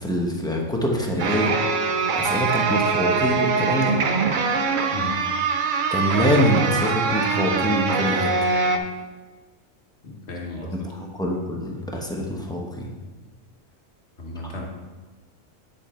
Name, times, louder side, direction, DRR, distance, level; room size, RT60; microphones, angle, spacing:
voice 1, 0.0-1.5 2.2-4.0 5.9-8.3 11.0-12.9, equal, 5° left, -1 dB, 0.9 m, -24 dB
sound 1, 1.2-8.8, right 4 dB, 50° right, 0.6 m, -23 dB
voice 2, 10.0-10.9 14.2-14.6, left 2 dB, 55° left, -1 dB, 1.7 m, -34 dB
9.3 x 5.2 x 4.4 m, 1.4 s
omnidirectional pair, 1.4 m